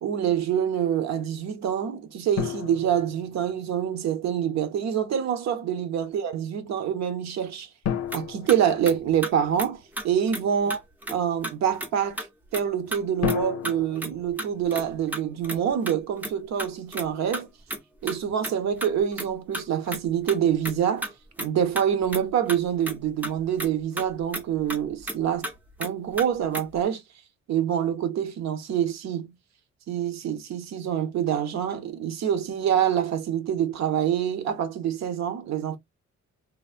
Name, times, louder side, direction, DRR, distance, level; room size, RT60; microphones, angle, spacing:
voice 1, 0.0-7.7 8.1-10.8 11.1-12.3 12.5-17.5 18.0-21.1 21.4-25.4 25.8-27.0 27.5-29.3 29.9-35.8, right 9 dB, 65° right, 0.6 m, -26 dB
sound 1, 2.4-4.0 7.8-9.7 13.2-15.5, left 9 dB, 60° left, 0.5 m, -34 dB
sound 2, 8.1-8.2 8.5-8.6 8.9-9.0 9.2-9.3 9.6-9.7 10.0-10.4 10.7-11.2 11.4-11.9 12.2-12.3 12.5-12.6 12.9-13.4 13.6-15.6 15.9-16.3 16.6-17.4 17.7-17.8 18.1-19.3 19.5-20.8 21.0-21.1 21.4-21.5 21.8-22.2 22.5-23.0 23.2-23.3 23.6-23.7 24.0-24.1 24.3-25.2 25.4-25.5 25.8-25.9 26.2-26.3 26.5-26.8, right 1 dB, 5° right, 0.5 m, -33 dB
3.4 x 2.0 x 2.4 m
wide cardioid pair, 165°, 29 cm